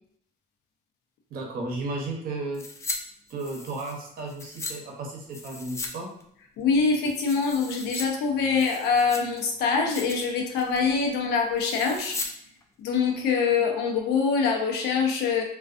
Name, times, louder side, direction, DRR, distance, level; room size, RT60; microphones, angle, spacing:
voice 1, 1.3-2.7 3.3-6.1, right 2 dB, 60° right, 0 dB, 0.7 m, -34 dB
sound 1, 2.5-3.0 3.3-4.7 5.3-5.9 6.2-6.3 6.8-8.0 8.4-9.4 9.8-10.3 10.6-10.9 11.6-12.3 12.6-12.7, left 3 dB, 15° left, 0.3 m, -37 dB
voice 2, 6.6-12.2 12.8-15.4, left 5 dB, 80° left, 1 dB, 0.6 m, -24 dB
2.3 x 2.3 x 2.5 m, 0.67 s
cardioid pair, 110°, 17 cm